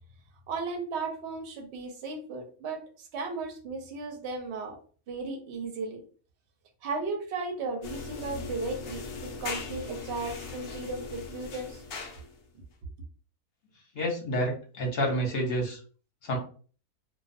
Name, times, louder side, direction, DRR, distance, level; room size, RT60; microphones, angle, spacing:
voice 1, 0.5-4.8 5.1-6.0 6.8-11.8, right 3 dB, 60° right, 3 dB, 0.7 m, -35 dB
sound 1, 7.8-12.5, left 4 dB, 85° left, 0.5 m, -39 dB
voice 2, 13.9-15.8 16.2-16.4, equal, 50° left, 0 dB, 0.8 m, -29 dB
2.3 x 2.3 x 2.5 m, 0.41 s
omnidirectional pair, 1.6 m